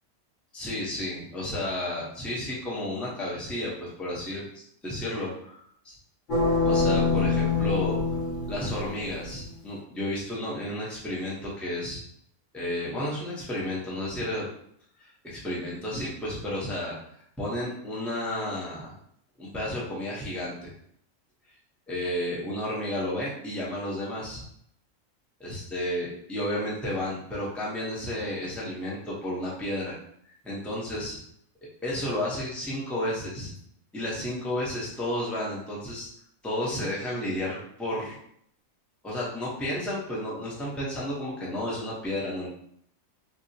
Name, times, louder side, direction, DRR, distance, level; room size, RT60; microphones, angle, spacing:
voice 1, 0.5-4.5 4.8-5.5 5.8-5.9 6.6-8.0 8.5-12.0 12.5-14.5 15.0-17.0 17.4-18.9 19.4-20.7 21.9-24.4 25.4-29.9 30.4-31.2 31.8-33.5 33.9-36.1 36.4-38.2 39.0-42.5, left 1 dB, ahead, -6 dB, 0.6 m, -32 dB
sound 1, 6.3-9.3, left 3 dB, 80° left, 1.8 m, -25 dB
4.2 x 2.0 x 2.7 m, 0.68 s
omnidirectional pair, 1.4 m